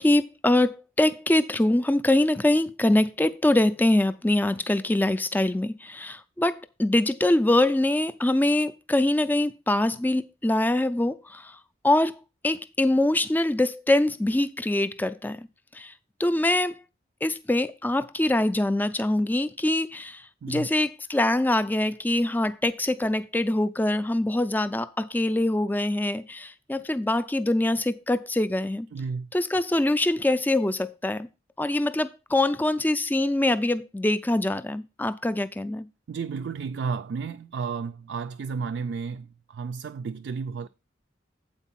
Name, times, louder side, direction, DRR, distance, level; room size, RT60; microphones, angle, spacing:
voice 1, 0.0-11.6 11.8-12.2 12.4-15.5 15.7-15.9 16.2-16.8 17.2-28.9 29.3-31.3 31.6-35.9, left 1 dB, 10° left, 0.3 m, -24 dB
voice 2, 28.9-29.3 36.1-40.7, right 5 dB, 65° right, 0.3 m, -32 dB
8.2 x 4.5 x 5.7 m
head